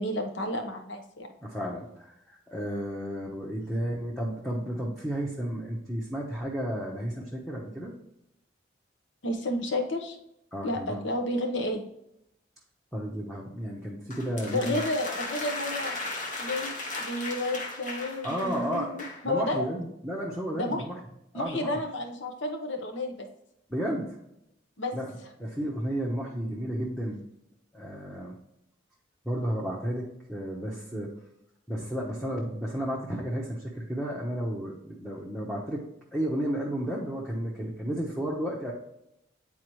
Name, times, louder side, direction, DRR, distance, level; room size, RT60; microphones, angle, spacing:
voice 1, 0.0-1.3 9.2-10.2 10.6-11.8 14.5-16.0 16.4-16.7 17.0-19.7 20.5-20.8 21.3-23.3 24.8-24.9, left 1 dB, 75° left, 3 dB, 1.0 m, -31 dB
voice 2, 1.4-7.9 10.5-11.0 12.9-14.8 18.2-18.9 19.3-21.0 21.3-21.7 23.7-24.1 24.9-25.1 25.4-27.2 27.7-28.4 29.2-31.1 31.7-35.8 36.1-38.7, equal, ahead, -5 dB, 0.8 m, -32 dB
sound 1, 14.1-19.3, left 2 dB, 40° left, 1.1 m, -36 dB
9.4 x 4.2 x 3.1 m, 0.81 s
head